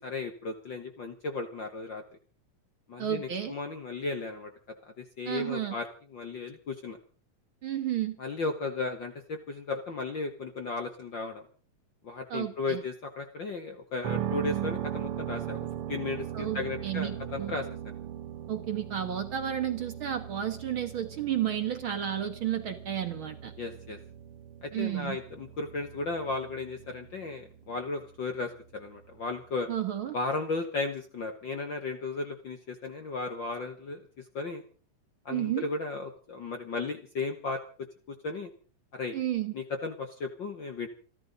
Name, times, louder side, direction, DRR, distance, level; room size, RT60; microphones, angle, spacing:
voice 1, 0.0-2.0 2.9-4.5 4.8-5.9 6.1-7.0 8.2-11.4 12.0-15.6 15.9-17.9 23.6-24.0 24.6-29.7 30.1-34.1 34.3-34.6 35.2-37.6 38.1-38.5 38.9-39.2 39.5-40.9, left 3 dB, 60° left, 6 dB, 1.2 m, -35 dB
voice 2, 3.0-3.5 5.2-5.7 7.6-8.2 12.3-12.8 16.3-17.5 18.5-23.5 24.7-25.2 29.7-30.2 35.3-35.7 39.1-39.5, right 10 dB, 55° right, 7 dB, 1.5 m, -32 dB
sound 1, 14.0-29.9, right 11 dB, 80° right, 1.2 m, -39 dB
28.0 x 12.0 x 4.0 m, 0.41 s
omnidirectional pair, 3.7 m